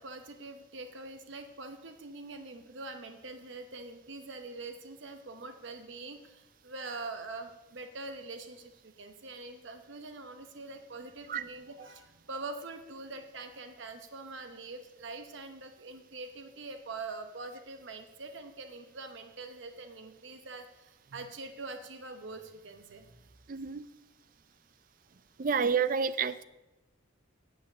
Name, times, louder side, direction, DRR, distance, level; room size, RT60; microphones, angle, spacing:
voice 1, 0.0-23.2 23.6-23.7 25.4-25.5, right 3 dB, 65° right, 7 dB, 0.9 m, -44 dB
voice 2, 23.5-23.8 25.4-26.4, right 6 dB, 45° right, 15 dB, 0.4 m, -29 dB
8.9 x 7.7 x 6.6 m, 1.0 s
head